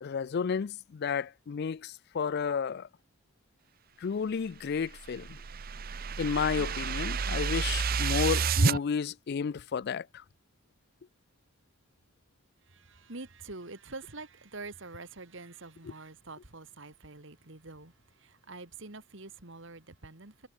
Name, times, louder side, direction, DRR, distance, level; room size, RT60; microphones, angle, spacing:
voice 1, 0.0-2.9 4.0-5.4 6.2-10.2, left 6 dB, 50° left, 0.3 m, -32 dB
sound 1, 4.7-8.8, right 5 dB, 40° right, 0.6 m, -29 dB
voice 2, 12.6-20.5, right 3 dB, 55° right, 2.0 m, -46 dB
head